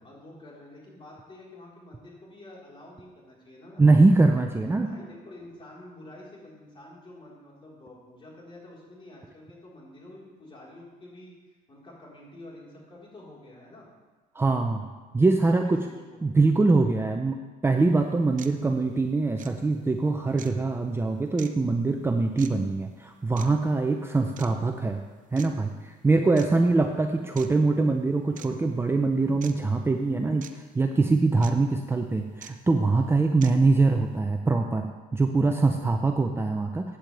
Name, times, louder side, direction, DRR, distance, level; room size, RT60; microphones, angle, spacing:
voice 1, 0.0-3.8 4.6-11.3 11.7-13.9 15.2-16.2 26.5-26.8, left 1 dB, 30° left, -5 dB, 4.3 m, -48 dB
voice 2, 3.8-4.9 14.3-14.9 15.1-15.8 16.2-25.0 25.3-37.0, right 3 dB, 15° right, 4 dB, 0.6 m, -23 dB
sound 1, 17.7-17.8 18.4-18.5 19.4-19.5 20.4-20.5 21.4-21.5 22.4-22.5 23.4-23.5 24.4-24.5 25.4-25.5 26.4-26.5 27.4-27.5 28.4-28.5 29.4-29.5 30.4-30.5 31.4-31.5 32.4-32.5 33.4-33.5, right 9 dB, 50° right, 0.8 m, -44 dB
15.5 x 9.2 x 3.5 m, 1.3 s
cardioid pair, 110°, 17 cm